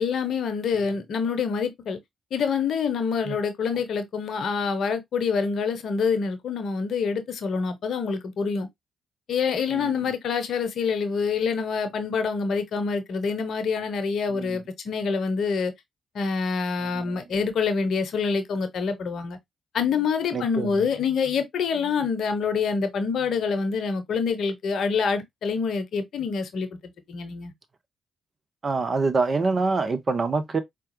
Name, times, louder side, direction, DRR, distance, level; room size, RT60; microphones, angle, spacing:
voice 1, 0.0-2.0 2.3-8.7 9.3-15.7 16.1-19.4 19.7-27.5, left 5 dB, 65° left, 0.7 m, -26 dB
voice 2, 16.8-17.2 20.3-20.7 28.6-30.6, right 4 dB, 45° right, 0.8 m, -26 dB
4.6 x 2.3 x 2.9 m
hypercardioid pair, 40°, 0 cm